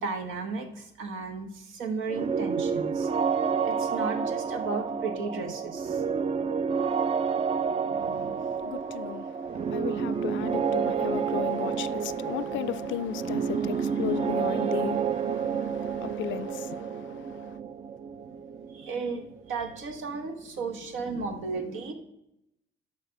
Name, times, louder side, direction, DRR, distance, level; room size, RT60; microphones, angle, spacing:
voice 1, 0.0-3.1 3.6-6.2 7.7-8.6 18.7-21.9, right 4 dB, 85° right, 1.2 m, -35 dB
sound 1, 2.1-19.7, right 6 dB, 30° right, 0.4 m, -29 dB
voice 2, 8.0-17.6, left 13 dB, 75° left, 0.4 m, -36 dB
6.6 x 5.1 x 5.9 m
cardioid pair, 90°, 20 cm